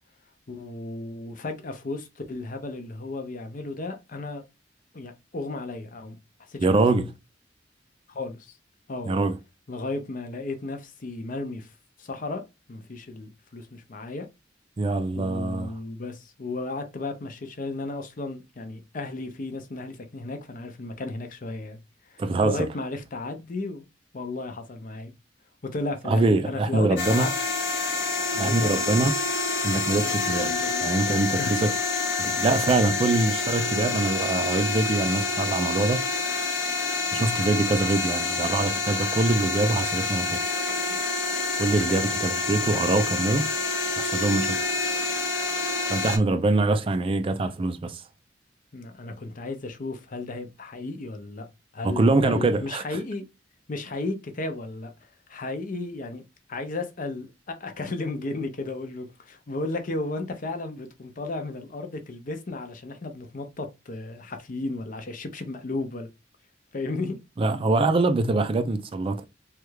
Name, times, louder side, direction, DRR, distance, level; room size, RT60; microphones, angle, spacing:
voice 1, 0.5-4.4 4.9-6.2 6.5-6.8 8.1-8.6 8.9-9.3 9.7-11.7 12.0-12.4 12.7-14.3 15.1-21.8 22.1-23.9 24.1-25.1 25.6-27.3 28.3-29.1 30.0-30.9 31.4-31.6 37.5-37.7 48.7-51.5 51.7-53.2 53.7-54.9 55.3-56.2 56.5-66.1 66.7-67.2, left 2 dB, 45° left, 0.6 m, -34 dB
voice 2, 6.6-7.1 9.1-9.4 14.8-15.7 22.2-22.7 26.1-27.3 28.4-29.1 29.6-30.5 30.8-31.7 32.2-36.1 37.1-40.4 41.6-43.5 44.0-44.6 45.9-48.0 51.8-52.8 67.4-69.2, right 2 dB, 30° right, 0.3 m, -24 dB
sound 1, 27.0-46.2, left 4 dB, 75° left, 0.8 m, -27 dB
3.2 x 2.3 x 3.1 m
head